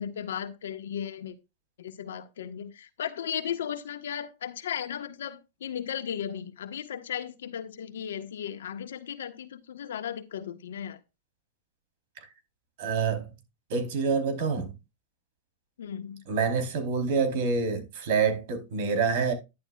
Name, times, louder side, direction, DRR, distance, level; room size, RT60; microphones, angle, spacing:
voice 1, 0.0-1.3 1.8-11.0 15.8-16.2, left 9 dB, 80° left, 1.5 m, -36 dB
voice 2, 12.8-13.3 13.7-14.7 16.3-19.3, right 5 dB, 60° right, 4.1 m, -27 dB
11.0 x 11.0 x 2.5 m
hypercardioid pair, 115°, 0 cm